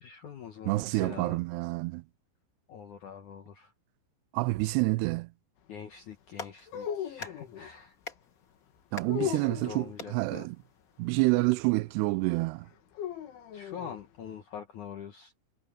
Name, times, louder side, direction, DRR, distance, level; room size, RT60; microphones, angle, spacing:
voice 1, 0.0-1.4 2.7-3.7 5.7-8.0 9.2-10.5 13.5-15.3, left 7 dB, 70° left, 1.9 m, -44 dB
voice 2, 0.7-2.0 4.3-5.3 8.9-10.6 11.0-12.7, right 23 dB, 85° right, 2.4 m, -28 dB
Clapping, 6.1-11.5, left 4 dB, 30° left, 1.8 m, -48 dB
sound 1, 6.7-7.7 9.1-9.9 12.9-14.0, left 9 dB, 85° left, 4.7 m, -36 dB
omnidirectional pair, 5.3 m